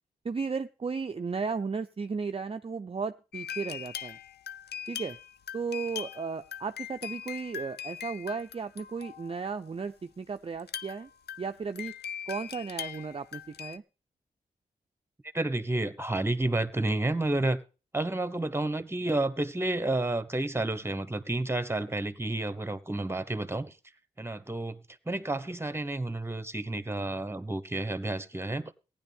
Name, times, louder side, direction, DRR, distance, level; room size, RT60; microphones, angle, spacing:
voice 1, 0.2-4.2 4.9-5.2 5.5-11.1 11.4-11.9 12.3-13.8, right 5 dB, 35° right, 0.5 m, -35 dB
sound 1, 3.3-9.6 10.6-13.8, left 9 dB, 80° left, 0.6 m, -41 dB
voice 2, 15.3-17.6 17.9-23.8 24.2-28.7, right 2 dB, 15° right, 1.2 m, -30 dB
15.5 x 10.5 x 3.5 m
cardioid pair, 50°, 17 cm